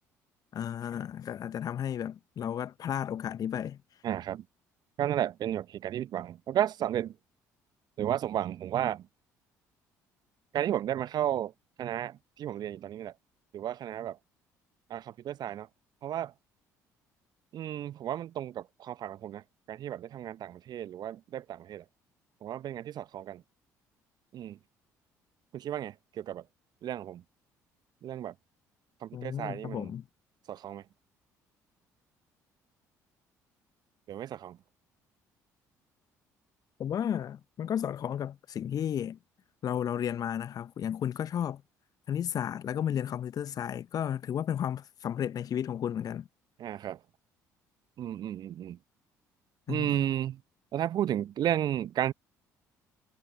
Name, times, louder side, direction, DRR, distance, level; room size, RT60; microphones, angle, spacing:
voice 1, 0.5-3.8 29.1-30.0 36.8-39.2 39.6-41.6 42.1-46.3 49.7-50.1, left 9 dB, 45° left, 0.7 m, -33 dB
voice 2, 4.0-4.4 5.0-7.1 8.0-9.0 10.5-11.5 11.8-12.1 12.4-13.1 13.5-14.2 14.9-15.7 16.0-16.3 17.5-19.4 19.7-21.8 22.4-23.4 24.3-24.6 25.5-26.4 26.8-27.2 28.0-28.3 29.0-29.9 30.5-30.8 34.1-34.6 46.6-47.0 48.0-48.8 49.7-50.4 50.7-52.1, right 11 dB, 50° right, 0.8 m, -33 dB
figure-of-eight pair, 50°, 9 cm